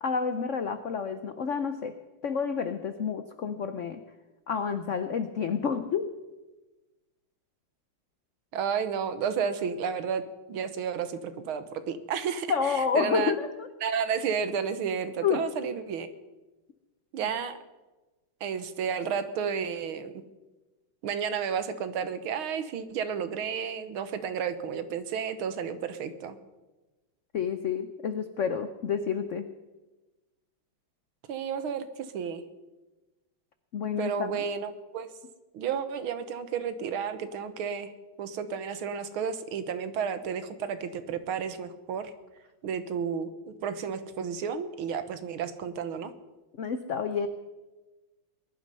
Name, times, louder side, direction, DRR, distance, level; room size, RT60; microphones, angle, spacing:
voice 1, 0.0-2.0 2.2-4.0 4.5-6.1 12.5-13.7 15.2-15.5 27.3-29.4 33.7-34.4 46.6-47.3, left 6 dB, 85° left, 10 dB, 0.6 m, -29 dB
voice 2, 8.5-13.3 13.8-16.1 17.1-17.6 18.4-20.1 21.0-26.4 31.3-32.4 34.0-35.1 35.5-37.9 38.2-42.1 42.6-46.1, right 7 dB, 75° right, 11 dB, 1.9 m, -32 dB
21.0 x 11.5 x 5.5 m, 1.1 s
omnidirectional pair, 2.3 m